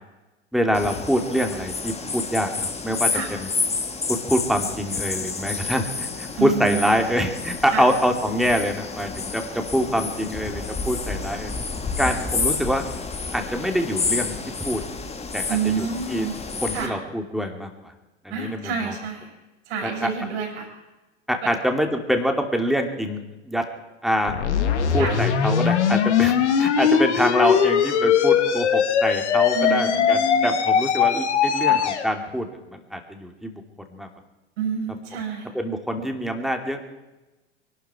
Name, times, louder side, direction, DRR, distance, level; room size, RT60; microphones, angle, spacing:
voice 1, 0.5-3.1 3.4-3.5 4.1-11.5 12.0-12.9 13.3-14.3 14.6-14.8 15.3-16.3 16.6-17.9 18.2-18.9 19.8-20.1 21.3-23.6 24.0-24.3 24.9-33.6 33.9-34.1 35.5-36.9, equal, ahead, 4 dB, 2.5 m, -25 dB
sound 1, 0.7-16.9, left 4 dB, 20° left, 1.9 m, -30 dB
voice 2, 6.4-6.9 7.7-7.9 12.0-12.2 15.5-16.3 16.7-16.9 18.3-19.3 19.7-20.7 21.4-21.5 25.0-25.2 29.5-30.5 31.6-31.8 34.6-35.5, right 5 dB, 65° right, 1 dB, 6.2 m, -28 dB
sound 2, 24.3-32.1, left 7 dB, 75° left, 1.9 m, -20 dB
23.5 x 12.0 x 4.9 m, 1.1 s
hypercardioid pair, 85°, 35 cm